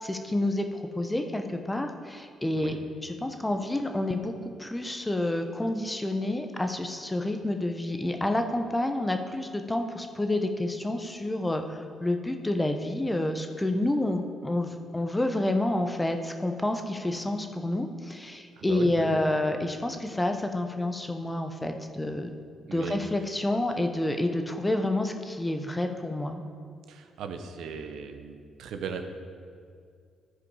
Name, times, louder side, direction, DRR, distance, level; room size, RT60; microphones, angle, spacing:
voice 1, 0.0-2.8 3.0-4.3 4.6-22.3 22.7-26.4, left 1 dB, 10° left, 6 dB, 0.7 m, -29 dB
voice 2, 18.6-19.2 22.7-23.0 26.9-29.0, right 6 dB, 80° right, 6 dB, 0.7 m, -38 dB
13.0 x 4.9 x 4.8 m, 2.2 s
cardioid pair, 90°, 0 cm